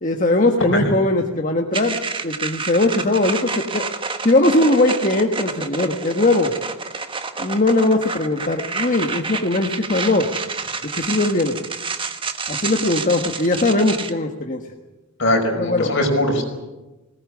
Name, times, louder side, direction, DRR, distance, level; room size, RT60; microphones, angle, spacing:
voice 1, 0.0-3.8 4.2-6.5 7.4-10.3 10.9-11.6 12.5-14.6 15.5-15.9, left 2 dB, 35° left, 3 dB, 1.5 m, -19 dB
sound 1, 1.7-14.1, right 4 dB, 25° right, 1.3 m, -29 dB
voice 2, 15.2-16.4, left 1 dB, 60° left, 3 dB, 5.3 m, -20 dB
21.0 x 19.0 x 9.8 m, 1.1 s
head